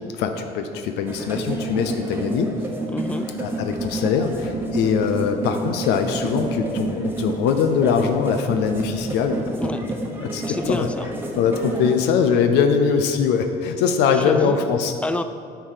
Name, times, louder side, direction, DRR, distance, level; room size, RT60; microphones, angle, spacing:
voice 1, 0.2-2.5 3.4-9.4 10.2-10.9 11.3-14.9, left 6 dB, 90° left, 6 dB, 0.6 m, -22 dB
sound 1, 1.1-11.9, right 2 dB, 15° right, 1.0 m, -29 dB
voice 2, 2.9-3.3 9.6-10.0 10.4-11.1 14.1-14.6 15.0-15.2, left 2 dB, 5° left, 10 dB, 0.3 m, -28 dB
9.0 x 4.7 x 4.9 m, 2.3 s
cardioid pair, 110°, 17 cm